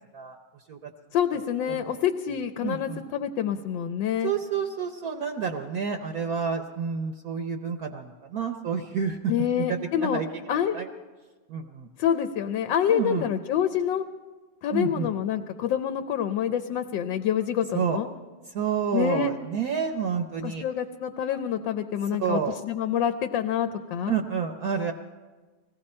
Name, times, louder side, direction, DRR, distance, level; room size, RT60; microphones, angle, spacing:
voice 1, 1.1-4.3 9.3-10.2 10.5-10.8 12.0-14.0 14.6-18.1 18.9-19.3 20.4-24.2, left 9 dB, 80° left, 8 dB, 1.3 m, -27 dB
voice 2, 2.6-3.0 4.2-9.3 9.6-10.9 11.5-11.9 12.9-13.3 14.7-15.1 17.7-18.0 18.5-20.6 22.2-22.5 24.1-24.9, right 6 dB, 60° right, 5 dB, 1.1 m, -29 dB
19.5 x 16.0 x 4.3 m, 1.3 s
omnidirectional pair, 2.1 m